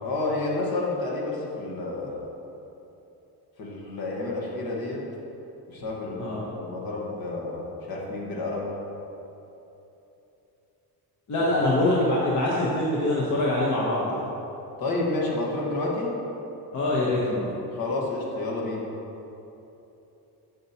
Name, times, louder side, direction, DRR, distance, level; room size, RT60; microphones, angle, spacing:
voice 1, 0.0-2.1 3.6-5.0 5.7-8.7 14.8-16.1 17.7-18.8, left 2 dB, 65° left, -3 dB, 1.5 m, -30 dB
voice 2, 11.3-14.1 16.7-17.6, left 1 dB, 45° left, -6 dB, 1.0 m, -24 dB
7.6 x 6.9 x 2.9 m, 3.0 s
cardioid pair, 145°, 39 cm